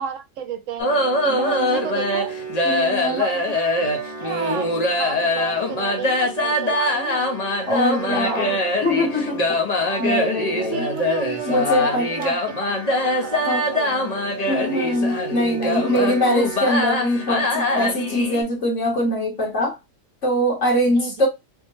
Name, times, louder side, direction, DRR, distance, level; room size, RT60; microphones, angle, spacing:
voice 1, 0.0-2.3 2.9-3.6 4.2-7.3 7.8-8.6 9.9-10.2 10.7-14.1 20.9-21.1, right 7 dB, 75° right, 0.9 m, -32 dB
sound 1, 0.8-18.4, left 1 dB, 40° left, 0.6 m, -23 dB
voice 2, 2.6-3.2 7.7-8.6 8.8-9.6 10.0-10.8 11.4-12.4 13.4-13.6 14.5-19.8 20.2-21.3, equal, 65° left, 1.6 m, -22 dB
3.5 x 2.1 x 3.0 m
omnidirectional pair, 1.4 m